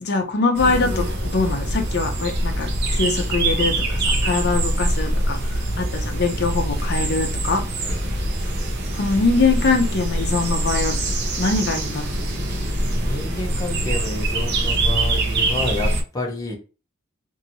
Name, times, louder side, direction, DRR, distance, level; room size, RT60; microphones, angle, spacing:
voice 1, 0.0-7.6 8.9-11.0 11.4-12.0, left 3 dB, 55° left, 4 dB, 0.6 m, -23 dB
sound 1, 0.6-16.0, right 1 dB, 55° right, 0.6 m, -24 dB
voice 2, 12.5-16.6, left 2 dB, 20° left, -1 dB, 0.8 m, -30 dB
2.9 x 2.7 x 2.7 m, 0.33 s
head